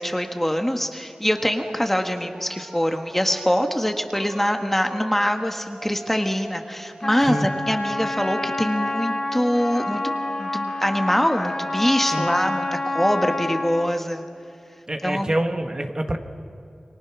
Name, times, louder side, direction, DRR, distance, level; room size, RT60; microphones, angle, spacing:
voice 1, 0.0-10.1 10.4-14.2 15.0-15.4, equal, 10° left, 5 dB, 1.7 m, -24 dB
Wind instrument woodwind instrument, 1.3-13.8, right 1 dB, 50° right, 6.0 m, -44 dB
Trumpet, 7.0-13.9, left 2 dB, 35° left, 2.5 m, -28 dB
voice 2, 14.9-16.2, right 1 dB, 35° right, 5 dB, 1.9 m, -25 dB
29.0 x 23.5 x 6.2 m, 2.6 s
wide cardioid pair, 55°, 2 cm